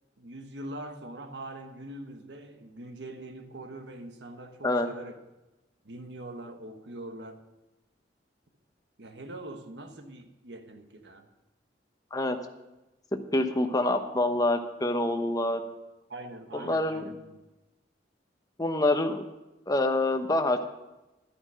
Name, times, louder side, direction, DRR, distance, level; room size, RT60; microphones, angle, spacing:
voice 1, 0.2-5.2 5.8-7.4 9.0-11.3 16.1-17.4, right 1 dB, 70° right, 6 dB, 1.3 m, -43 dB
voice 2, 13.3-15.6 16.5-17.1 18.6-19.2 19.7-20.7, left 2 dB, 20° left, 6 dB, 1.0 m, -26 dB
11.5 x 9.7 x 6.3 m, 1.0 s
head